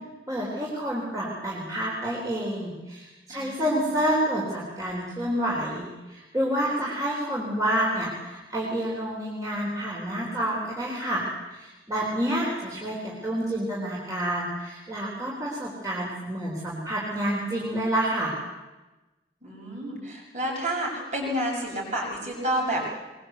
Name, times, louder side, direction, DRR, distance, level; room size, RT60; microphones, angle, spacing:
voice 1, 0.3-18.3, right 1 dB, 20° right, -5 dB, 4.0 m, -29 dB
voice 2, 3.3-3.9 19.4-22.9, right 1 dB, 40° right, -1 dB, 7.0 m, -30 dB
23.0 x 21.5 x 8.1 m, 1.1 s
head